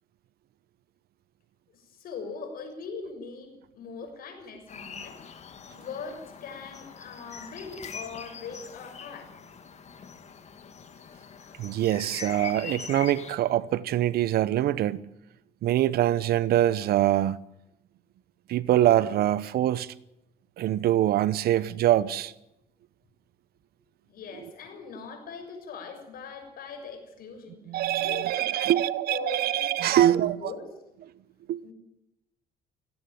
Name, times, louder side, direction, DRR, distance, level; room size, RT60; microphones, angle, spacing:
voice 1, 1.7-5.2 5.8-9.3 24.1-27.6 28.0-30.7 31.6-31.7, left 5 dB, 60° left, 6.8 m, -41 dB
sound 1, 4.7-13.3, left 6 dB, 40° left, 2.5 m, -43 dB
voice 2, 11.6-15.0 15.6-17.4 18.5-19.9 20.6-22.3 27.7-30.4 31.5-31.6, right 13 dB, 70° right, 0.9 m, -24 dB
17.5 x 16.5 x 9.4 m
cardioid pair, 110°, 17 cm